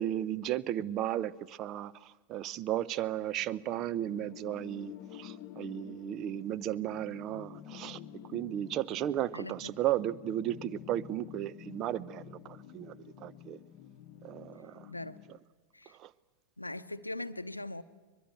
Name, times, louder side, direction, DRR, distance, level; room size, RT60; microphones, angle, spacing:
voice 1, 0.0-8.0 8.3-13.6 14.2-14.9 15.3-15.4 15.9-16.1, right 12 dB, 35° right, 0.7 m, -35 dB
sound 1, 3.4-15.4, left 10 dB, 45° left, 0.9 m, -50 dB
voice 2, 16.6-17.8, left 2 dB, 85° left, 0.7 m, -40 dB
23.0 x 21.5 x 8.9 m
figure-of-eight pair, 90°, 0 cm